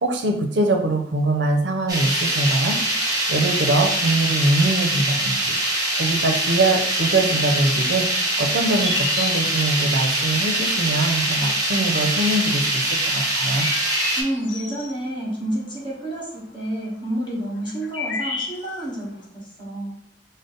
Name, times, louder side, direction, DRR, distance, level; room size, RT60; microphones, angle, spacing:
voice 1, 0.0-5.4 6.0-13.7, right 2 dB, 65° right, 4 dB, 0.6 m, -23 dB
sound 1, 1.9-14.2, right 1 dB, 20° right, 1.1 m, -23 dB
sound 2, 8.7-9.9 11.9-12.0 13.2-14.9 17.4-17.5 17.7-18.9, left 3 dB, 80° left, 0.6 m, -30 dB
voice 2, 14.2-19.9, right 1 dB, 25° left, -4 dB, 1.3 m, -29 dB
5.0 x 2.1 x 3.9 m, 0.66 s
head